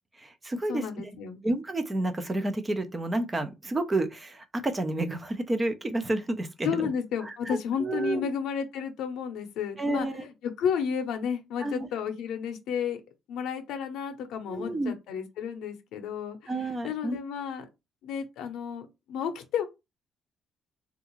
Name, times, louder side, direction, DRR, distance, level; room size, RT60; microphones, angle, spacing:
voice 1, 0.2-1.1 1.4-6.9 7.2-8.3 9.8-10.3 11.6-11.9 14.5-14.9 16.5-17.2, right 2 dB, 15° right, 0.4 m, -30 dB
voice 2, 0.7-1.4 6.6-10.3 10.6-13.0 13.3-16.5 16.8-17.7 18.0-19.6, left 7 dB, 80° left, 0.6 m, -32 dB
3.5 x 2.4 x 3.0 m
cardioid pair, 175°, 0 cm